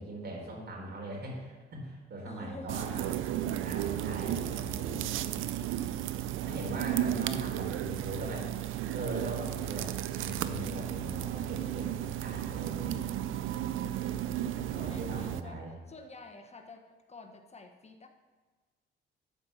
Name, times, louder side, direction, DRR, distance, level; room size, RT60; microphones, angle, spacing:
voice 1, 0.0-3.1 3.5-5.1 6.4-8.5 8.9-13.2 14.5-15.7, right 1 dB, 55° right, -1 dB, 3.9 m, -40 dB
voice 2, 2.2-3.1 4.2-5.6 14.7-18.1, left 3 dB, 35° left, 6 dB, 1.2 m, -49 dB
sound 1, 2.7-15.4, right 12 dB, 85° right, 0.6 m, -34 dB
12.5 x 5.3 x 6.9 m, 1.4 s
cardioid pair, 90°, 20 cm